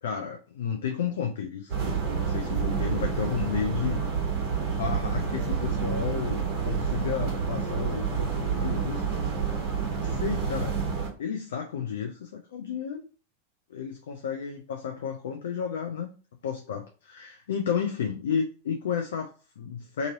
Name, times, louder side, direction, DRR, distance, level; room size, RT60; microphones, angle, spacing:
voice 1, 0.0-4.0 4.6-9.0 9.9-10.8 11.2-13.1 13.7-16.1 16.4-20.1, left 7 dB, 60° left, 4 dB, 0.4 m, -32 dB
sound 1, 1.7-11.1, right 6 dB, 40° right, 1.2 m, -28 dB
3.0 x 2.6 x 3.8 m, 0.37 s
figure-of-eight pair, 90°, 0 cm